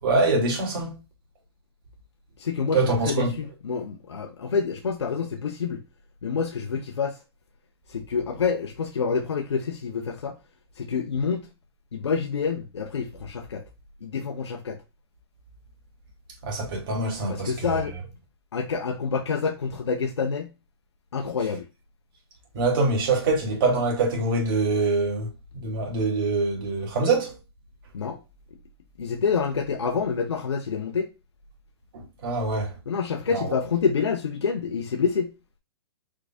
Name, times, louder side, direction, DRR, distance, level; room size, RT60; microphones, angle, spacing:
voice 1, 0.0-1.0 2.7-3.3 16.4-17.8 22.5-25.3 25.6-27.3 31.9-32.7 33.3-33.5, right 3 dB, 55° right, 2.8 m, -24 dB
voice 2, 2.4-5.8 6.2-7.2 7.9-10.4 10.8-11.5 11.9-13.6 14.0-14.8 17.3-17.9 18.5-20.5 21.1-21.7 27.9-28.2 29.0-31.1 32.9-35.3, left 5 dB, 90° left, 0.8 m, -27 dB
4.7 x 4.7 x 2.3 m
hypercardioid pair, 145°, 14 cm